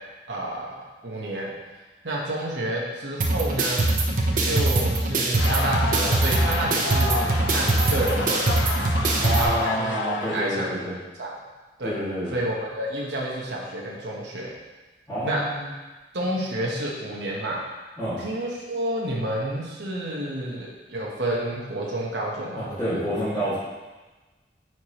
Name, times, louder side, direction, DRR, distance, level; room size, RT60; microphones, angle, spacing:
voice 1, 0.3-0.7 1.0-1.5 2.0-3.8 4.4-8.6 9.1-10.8 11.2-11.3 11.8-12.0 12.3-14.5 15.2-15.4 16.1-17.6 18.2-23.0, right 1 dB, 75° right, -3 dB, 1.1 m, -29 dB
sound 1, 3.2-9.4, right 2 dB, 50° right, 0.8 m, -23 dB
sound 2, 5.4-10.7, left 3 dB, 85° left, 0.8 m, -30 dB
voice 2, 9.2-10.9 11.8-12.3 15.1-15.7 18.0-18.2 22.6-23.6, right 1 dB, 10° left, -16 dB, 2.1 m, -28 dB
8.9 x 4.8 x 3.0 m, 1.2 s
head